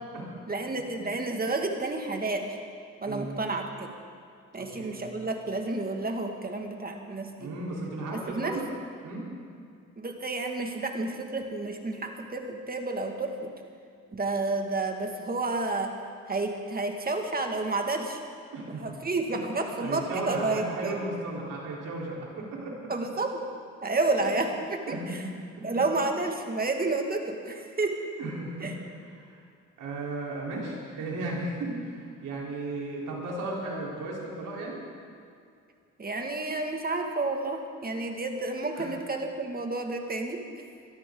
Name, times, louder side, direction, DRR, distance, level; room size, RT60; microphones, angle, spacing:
voice 1, 0.5-2.6 3.0-3.9 4.5-7.5 8.1-8.6 10.0-13.5 14.1-16.0 16.3-18.2 18.8-21.0 22.9-23.4 23.8-25.3 25.6-28.0 28.6-28.8 36.0-40.7, right 2 dB, 30° right, 3 dB, 2.2 m, -30 dB
voice 2, 3.0-3.4 4.6-5.0 7.4-8.6 9.0-9.3 18.5-18.8 19.8-22.9 24.2-24.4 24.9-25.2 25.6-25.7 28.2-28.7 29.0-29.3 29.8-34.8 38.7-38.9, right 2 dB, 80° right, -3 dB, 4.2 m, -35 dB
22.0 x 14.0 x 4.0 m, 2.4 s
cardioid pair, 70°, 31 cm